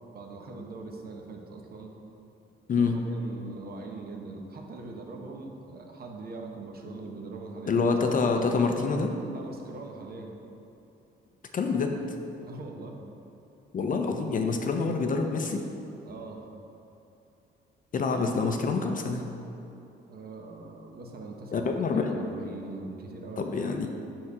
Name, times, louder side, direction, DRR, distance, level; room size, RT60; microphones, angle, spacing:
voice 1, 0.1-1.9 2.7-7.9 8.2-8.3 9.3-10.4 12.4-12.9 16.0-16.5 20.1-21.7 21.9-23.6, right 3 dB, 50° right, 1 dB, 0.9 m, -42 dB
voice 2, 7.7-9.1 11.5-12.0 13.7-15.6 17.9-19.2 21.5-22.3 23.4-24.0, left 4 dB, 40° left, 4 dB, 0.6 m, -26 dB
5.5 x 4.5 x 4.9 m, 2.9 s
cardioid pair, 90°, 20 cm